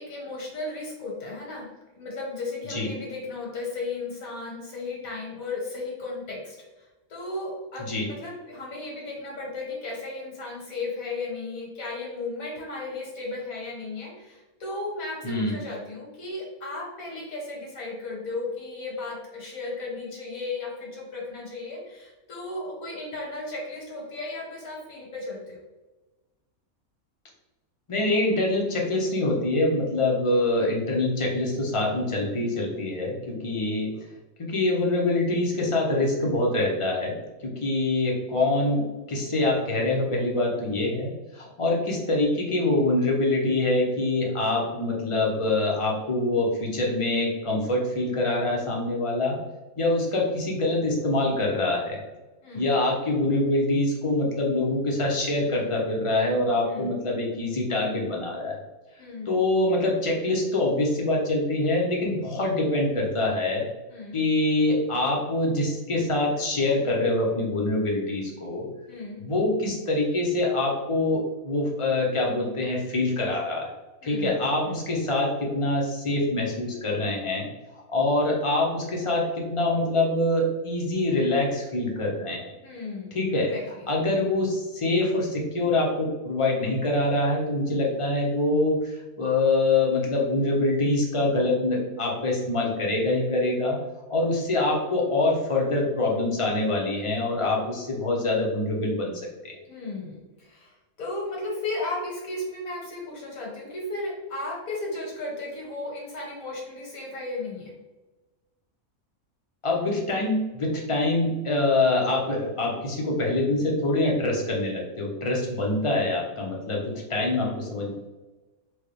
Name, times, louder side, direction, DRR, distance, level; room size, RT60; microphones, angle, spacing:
voice 1, 0.0-1.7 1.9-25.6 52.4-52.6 56.6-56.9 59.0-59.4 63.9-64.2 68.9-69.2 74.0-74.3 74.6-74.8 82.6-83.8 99.7-107.7, left 2 dB, 75° left, -3 dB, 1.6 m, -35 dB
voice 2, 15.2-15.6 27.9-33.9 34.4-37.1 37.4-38.8 39.1-49.4 49.8-52.0 52.5-58.6 59.3-63.6 64.1-68.7 69.2-73.7 74.0-77.5 77.9-82.4 83.1-83.5 83.9-93.8 94.1-99.1 99.4-99.5 109.6-117.9, left 2 dB, 30° left, -2 dB, 0.6 m, -25 dB
4.5 x 2.2 x 3.2 m, 1.1 s
omnidirectional pair, 1.5 m